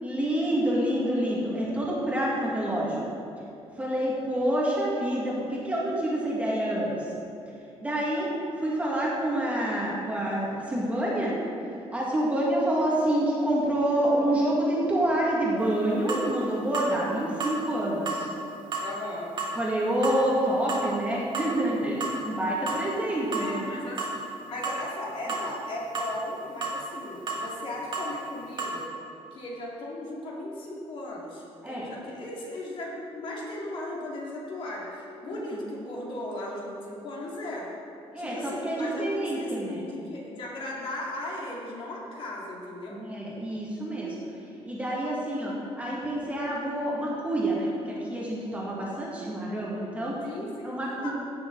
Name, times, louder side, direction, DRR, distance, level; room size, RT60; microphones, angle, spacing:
voice 1, 0.0-3.0 3.8-7.1 7.8-11.4 11.9-18.3 19.6-23.7 31.6-31.8 35.2-35.7 38.1-39.9 42.9-44.2 44.6-50.2 50.6-51.1, right 1 dB, 10° right, -5 dB, 2.0 m, -27 dB
sound 1, 15.6-15.7 16.1-16.3 16.7-16.9 17.4-17.6 18.1-18.2 18.7-18.9 19.4-19.5 20.0-20.2 20.7-20.9 21.3-21.5 22.0-22.2 22.7-22.8 23.3-23.5 24.0-24.2 24.6-24.8 25.3-25.5 25.9-26.1 26.6-26.8 27.3-27.4 27.9-28.1 28.6-28.8, right 4 dB, 45° right, 1.9 m, -31 dB
voice 2, 18.8-19.3 23.4-28.9 29.3-37.7 38.2-43.0 50.2-50.7 51.0-51.1, left 1 dB, 55° left, -4 dB, 2.3 m, -37 dB
16.5 x 6.9 x 4.0 m, 2.7 s
cardioid pair, 155°, 11 cm